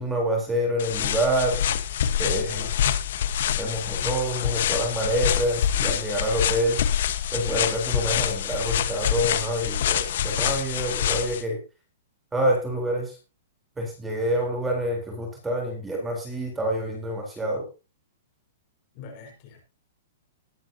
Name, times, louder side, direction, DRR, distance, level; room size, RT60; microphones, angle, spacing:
voice 1, 0.0-1.6 2.2-2.7 3.6-6.8 7.3-11.6 12.3-13.2 13.8-17.6, right 1 dB, 10° right, 1 dB, 3.8 m, -27 dB
sound 1, 0.8-11.4, left 9 dB, 65° left, 1.3 m, -26 dB
voice 2, 2.2-3.0 18.9-19.6, left 5 dB, 40° left, 3 dB, 5.5 m, -41 dB
20.0 x 9.0 x 2.8 m, 0.29 s
hypercardioid pair, 150°, 0 cm